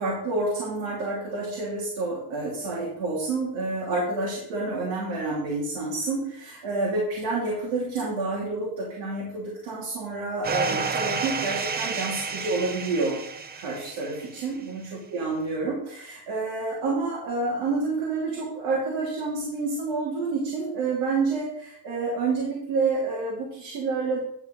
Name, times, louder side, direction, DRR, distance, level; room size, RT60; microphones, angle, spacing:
voice 1, 0.0-13.2 13.5-24.2, right 3 dB, 85° right, -4 dB, 3.1 m, -28 dB
sound 1, 10.4-14.5, right 5 dB, 20° right, 0.4 m, -31 dB
10.5 x 4.7 x 6.5 m, 0.75 s
cardioid pair, 170°, 47 cm